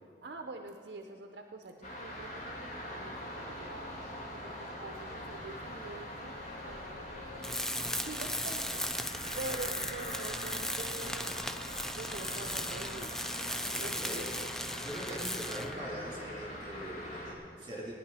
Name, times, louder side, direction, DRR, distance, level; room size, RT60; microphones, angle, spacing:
voice 1, 0.2-7.6 8.0-8.9 9.3-11.4 11.9-13.2 13.8-14.5, right 2 dB, 65° right, 4 dB, 0.6 m, -45 dB
sound 1, 1.8-17.3, left 1 dB, 40° left, 1.9 m, -43 dB
sound 2, 6.3-12.8, left 3 dB, 75° left, 1.1 m, -52 dB
Tools, 7.4-15.8, equal, 5° left, 0.3 m, -37 dB
voice 2, 13.5-14.3 14.8-17.9, right 1 dB, 30° right, -6 dB, 3.2 m, -42 dB
18.5 x 10.0 x 4.1 m, 2.5 s
head